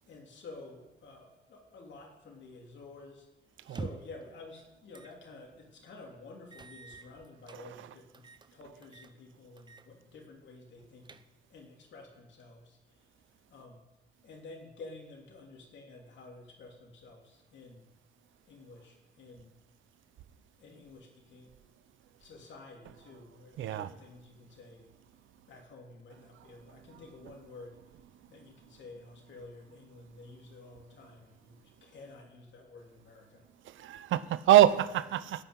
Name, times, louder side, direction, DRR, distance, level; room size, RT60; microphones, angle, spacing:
voice 1, 0.1-3.3 3.7-11.2 11.5-13.1 13.5-13.8 14.2-17.9 18.5-19.5 20.6-21.5 22.2-24.9 25.5-27.8 28.3-33.5, left 3 dB, 65° left, 3.1 m, -51 dB
sound 1, 3.6-4.2 4.9-5.2 5.6-5.7 6.5-7.6 8.1-8.5 8.8-9.1 9.6-9.9 10.2-10.3 10.8-11.6, right 4 dB, 20° right, 0.6 m, -45 dB
voice 2, 7.5-8.0 22.8-23.2 23.6-23.9 26.1-27.4 27.9-28.1 28.4-28.5 33.6-35.4, right 13 dB, 75° right, 0.7 m, -28 dB
15.5 x 5.8 x 8.2 m
cardioid pair, 85°, 20 cm